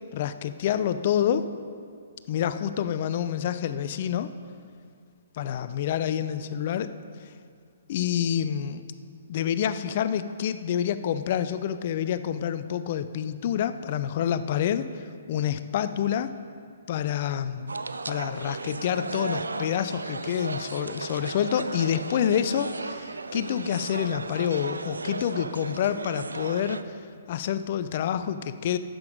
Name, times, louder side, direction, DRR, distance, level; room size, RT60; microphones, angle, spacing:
voice 1, 0.1-1.4 2.3-4.3 5.3-6.9 7.9-8.8 9.3-14.9 15.3-16.3 16.9-17.7 18.1-26.8 27.3-28.8, left 9 dB, 45° left, 12 dB, 0.5 m, -27 dB
sound 1, 17.7-26.8, right 3 dB, 80° right, 0.4 m, -35 dB
10.5 x 7.8 x 5.1 m, 2.2 s
figure-of-eight pair, 125°, 0 cm